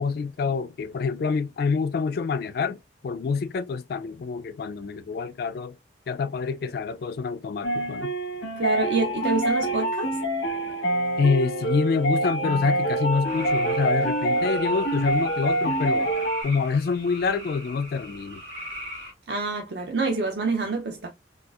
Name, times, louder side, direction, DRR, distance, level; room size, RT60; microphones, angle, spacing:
voice 1, 0.0-2.8 3.0-5.8 6.1-8.1 11.2-16.1 16.4-18.4, left 5 dB, 55° left, 0.3 m, -26 dB
sound 1, 7.6-16.4, right 1 dB, 90° left, 1.0 m, -26 dB
voice 2, 8.6-10.2 19.3-21.1, right 3 dB, 65° right, 0.5 m, -27 dB
Singing, 10.9-14.7 15.1-15.2, left 2 dB, 35° right, 0.8 m, -36 dB
sound 2, 13.2-19.1, equal, 90° right, 1.9 m, -40 dB
4.2 x 2.4 x 2.3 m
head